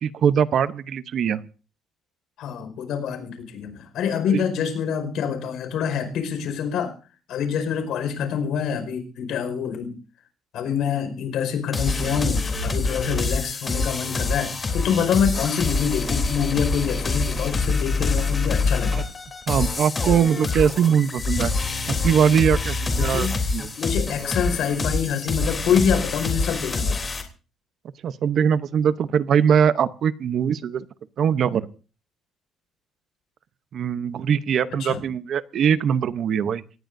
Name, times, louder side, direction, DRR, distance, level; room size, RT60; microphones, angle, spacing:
voice 1, 0.0-1.4 4.3-4.4 18.9-19.0 19.5-21.5 21.9-23.7 28.0-30.9 31.2-31.7 33.7-36.6, right 8 dB, 55° right, 13 dB, 0.8 m, -21 dB
voice 2, 2.4-6.9 7.3-10.0 10.5-19.0 23.0-23.4 23.8-27.0 34.8-35.0, left 7 dB, 75° left, 7 dB, 5.0 m, -26 dB
sound 1, 11.7-27.2, left 3 dB, 25° left, 3.3 m, -26 dB
25.0 x 18.5 x 2.7 m, 0.36 s
cardioid pair, 150°, 0 cm